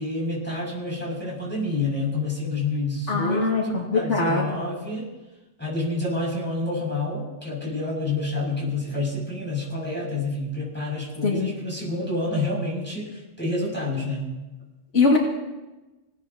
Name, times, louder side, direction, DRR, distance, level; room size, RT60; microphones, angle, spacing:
voice 1, 0.0-5.1 5.6-14.3, left 2 dB, 10° left, -5 dB, 6.3 m, -28 dB
voice 2, 3.1-4.4 11.2-11.5 14.9-15.2, left 3 dB, 80° left, -2 dB, 2.5 m, -22 dB
28.0 x 17.5 x 2.9 m, 1.1 s
omnidirectional pair, 1.2 m